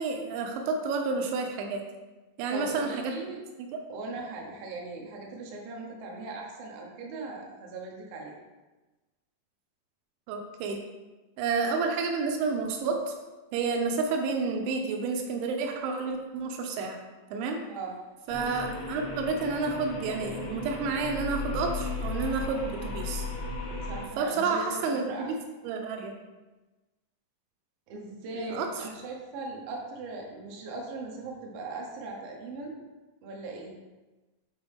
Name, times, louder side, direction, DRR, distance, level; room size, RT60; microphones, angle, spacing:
voice 1, 0.0-1.8 2.4-3.1 10.3-10.8 11.4-13.1 13.5-17.0 17.3-17.6 18.3-23.3 24.2-25.4 25.6-26.1 28.3-28.7, right 4 dB, 85° right, 3 dB, 3.1 m, -30 dB
voice 2, 2.5-3.4 3.9-8.4 17.7-18.0 23.8-25.3 27.9-32.8 33.2-33.7, right 3 dB, 70° right, -1 dB, 2.4 m, -39 dB
sound 1, 18.3-24.0, left 3 dB, 65° left, 2.1 m, -35 dB
8.1 x 4.4 x 3.5 m, 1.2 s
omnidirectional pair, 5.2 m